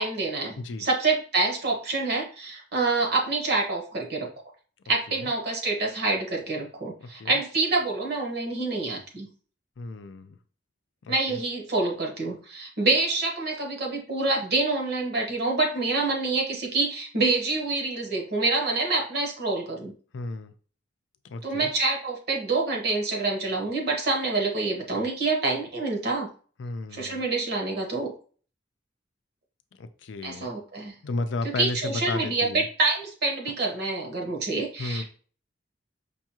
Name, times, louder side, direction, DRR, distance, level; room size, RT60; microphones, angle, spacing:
voice 1, 0.0-4.3 4.9-9.3 11.1-19.9 21.4-26.3 26.9-28.1 30.2-30.9 31.4-35.0, right 3 dB, 60° right, 1 dB, 1.2 m, -27 dB
voice 2, 7.0-7.4 9.8-10.4 11.0-11.4 20.1-20.5 21.3-21.7 26.6-27.2 29.8-30.5 31.0-32.7 34.8-35.0, left 3 dB, 85° left, 9 dB, 0.4 m, -33 dB
5.2 x 2.3 x 2.9 m, 0.41 s
head